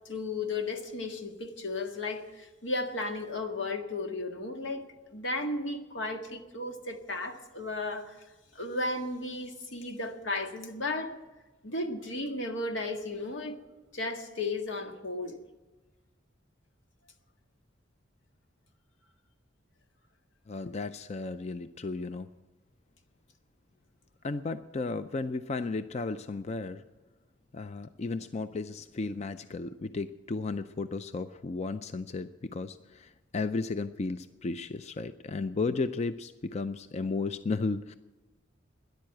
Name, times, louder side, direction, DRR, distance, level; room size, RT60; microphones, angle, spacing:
voice 1, 0.0-4.8 5.1-8.2 8.5-11.2 11.6-13.6 13.9-15.4, left 2 dB, 85° left, 1.7 m, -34 dB
voice 2, 20.5-22.3 24.2-26.8 27.5-37.9, left 3 dB, 35° left, 0.4 m, -34 dB
13.5 x 10.5 x 7.9 m
head